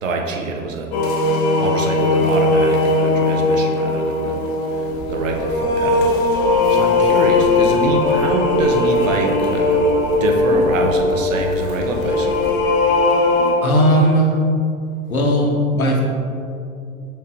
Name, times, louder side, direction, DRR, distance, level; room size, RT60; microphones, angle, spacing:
voice 1, 0.0-0.9 1.2-4.4 4.7-6.1 6.7-9.8 10.2-12.5, right 3 dB, 65° right, 2 dB, 0.9 m, -25 dB
sound 1, 0.9-13.5, left 2 dB, 35° left, 0.7 m, -18 dB
sound 2, 4.7-12.7, equal, 85° right, 1.5 m, -37 dB
voice 2, 13.6-14.3 15.1-16.0, right 1 dB, 75° left, 0 dB, 1.1 m, -16 dB
6.4 x 3.5 x 4.4 m, 2.5 s
figure-of-eight pair, 90°, 42 cm